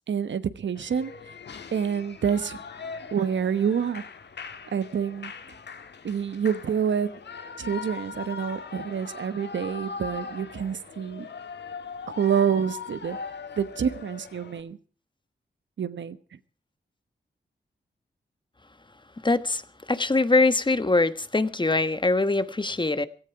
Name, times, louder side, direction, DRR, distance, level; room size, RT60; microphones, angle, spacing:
voice 1, 0.1-1.1 1.7-2.6 3.1-4.0 4.7-5.3 6.0-7.1 7.6-11.3 12.2-13.2 13.6-14.8 15.8-16.2, right 7 dB, 75° right, 1.1 m, -27 dB
Shout / Cheering, 0.7-14.6, left 5 dB, 65° left, 1.5 m, -40 dB
voice 2, 19.2-19.6 19.9-23.1, left 3 dB, 25° left, 1.3 m, -23 dB
17.5 x 15.0 x 4.7 m
cardioid pair, 50°, 19 cm